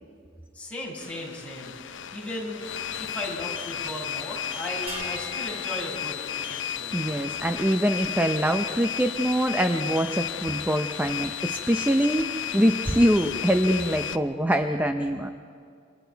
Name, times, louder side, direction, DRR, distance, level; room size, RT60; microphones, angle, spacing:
voice 1, 0.5-1.7 2.1-2.6 3.0-7.1, left 1 dB, 5° left, -5 dB, 6.0 m, -36 dB
sound 1, 1.0-14.2, left 9 dB, 70° left, 0.8 m, -33 dB
sound 2, 4.9-7.4, left 1 dB, 30° right, 5.4 m, -42 dB
voice 2, 6.9-15.3, equal, 10° right, 6 dB, 0.7 m, -24 dB
28.5 x 24.5 x 4.7 m, 2.3 s
head